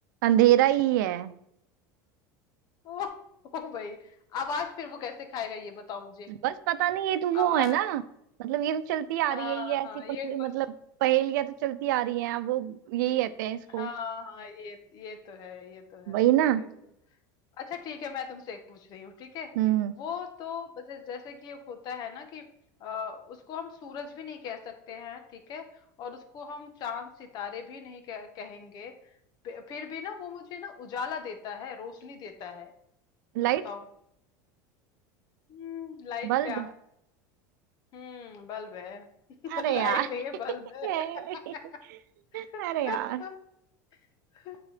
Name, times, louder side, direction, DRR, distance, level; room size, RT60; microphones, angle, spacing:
voice 1, 0.2-1.3 6.4-8.0 8.4-9.9 10.2-10.7 11.0-13.9 16.1-16.6 19.6-19.9 33.3-33.6 36.2-36.7 39.5-40.1 40.8-41.5 42.3-43.2, right 13 dB, 80° right, 12 dB, 0.7 m, -26 dB
voice 2, 3.5-6.3 7.3-7.8 9.3-10.5 13.7-16.7 17.6-19.5 19.9-22.5 22.8-28.9 29.4-32.7 33.6-33.8 35.5-36.6 37.9-39.1 39.4-41.0 41.3-41.8 42.3-43.3 44.3-44.6, left 6 dB, 45° left, 6 dB, 1.3 m, -38 dB
9.0 x 3.9 x 5.0 m, 0.76 s
supercardioid pair, 140°, 10 cm